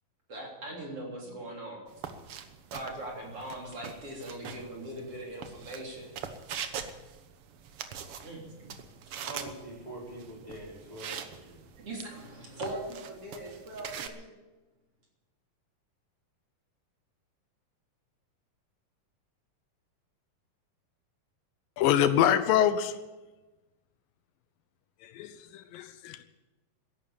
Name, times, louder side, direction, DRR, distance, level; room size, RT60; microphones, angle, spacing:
voice 1, 0.3-1.8 2.7-6.1 8.2-8.8 11.8-14.3, right 1 dB, 40° right, -2 dB, 4.1 m, -40 dB
sound 1, 1.9-14.1, right 8 dB, 75° right, 1.3 m, -43 dB
voice 2, 9.2-11.6, right 1 dB, 10° right, -4 dB, 4.8 m, -44 dB
voice 3, 21.8-22.9 25.0-26.2, left 10 dB, 80° left, 12 dB, 2.5 m, -25 dB
14.5 x 11.5 x 8.7 m, 1.1 s
omnidirectional pair, 4.0 m